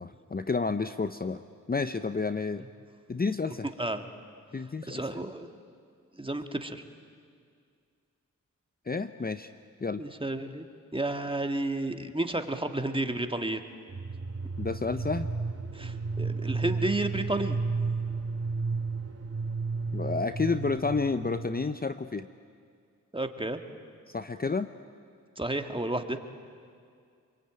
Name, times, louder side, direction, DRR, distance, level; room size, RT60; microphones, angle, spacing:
voice 1, 0.0-1.4 1.7-2.6 3.1-3.7 4.5-5.0 8.9-9.5 9.8-10.0 14.6-15.3 19.9-22.3 24.1-24.7, left 4 dB, 30° left, 10 dB, 0.7 m, -30 dB
voice 2, 3.8-4.1 4.9-5.5 6.1-6.8 10.0-10.6 10.9-13.6 15.7-17.6 23.1-23.6 25.4-26.2, right 2 dB, 15° right, 6 dB, 1.7 m, -31 dB
sound 1, 13.9-21.7, right 4 dB, 45° right, 2.5 m, -33 dB
25.0 x 23.0 x 8.9 m, 2.2 s
cardioid pair, 55°, 33 cm